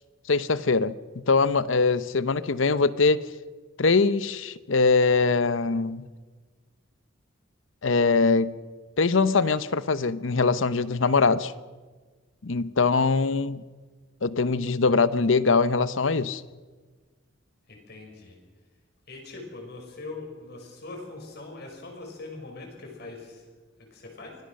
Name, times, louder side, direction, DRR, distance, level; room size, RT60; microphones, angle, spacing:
voice 1, 0.3-3.2 3.8-6.0 7.8-8.5 9.0-11.5 12.4-13.6 14.2-16.4, left 4 dB, 70° left, 16 dB, 0.8 m, -22 dB
voice 2, 17.7-18.4 19.1-23.5 23.9-24.4, left 3 dB, 55° left, 2 dB, 5.9 m, -41 dB
24.5 x 17.0 x 6.5 m, 1.4 s
head